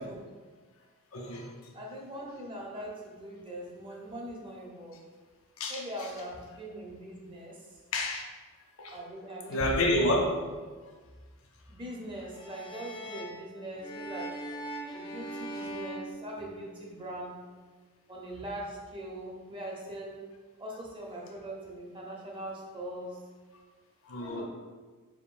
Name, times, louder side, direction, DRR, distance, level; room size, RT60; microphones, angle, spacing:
voice 1, 1.1-1.5 5.6-5.8 7.9-8.2 8.8-9.0 9.5-10.3 24.0-24.4, left 1 dB, 65° left, 1 dB, 0.6 m, -28 dB
voice 2, 1.7-5.0 5.7-7.6 8.9-9.8 11.7-14.3 14.9-17.3 18.1-20.2 20.6-23.2 24.2-24.4, right 1 dB, 25° right, -2 dB, 0.6 m, -41 dB
sound 1, 12.3-16.9, right 1 dB, 20° left, 0.4 m, -41 dB
4.6 x 3.6 x 2.5 m, 1.4 s
head